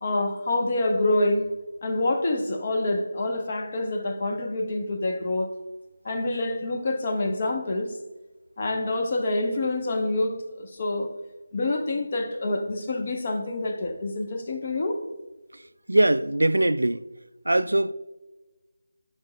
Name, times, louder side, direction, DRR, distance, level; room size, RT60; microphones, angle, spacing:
voice 1, 0.0-1.5 1.8-5.5 6.0-8.0 8.6-11.1 11.5-15.0, left 2 dB, 40° left, 0.9 m, -27 dB
voice 2, 15.9-17.0 17.5-17.9, right 1 dB, 90° right, 0.3 m, -21 dB
10.0 x 5.8 x 2.3 m
figure-of-eight pair, 165°, 0 cm